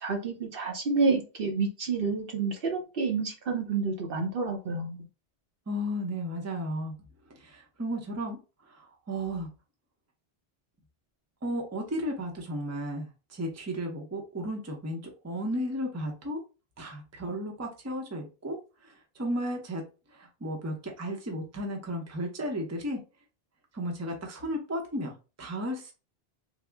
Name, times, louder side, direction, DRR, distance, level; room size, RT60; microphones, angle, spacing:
voice 1, 0.0-5.1, right 4 dB, 65° right, 0.9 m, -29 dB
voice 2, 5.7-6.9 7.4-8.4 8.8-9.5 11.4-16.4 16.8-18.6 19.2-19.8 20.1-23.0 23.7-25.9, equal, 20° right, 0.6 m, -34 dB
3.5 x 2.0 x 3.4 m
omnidirectional pair, 1.0 m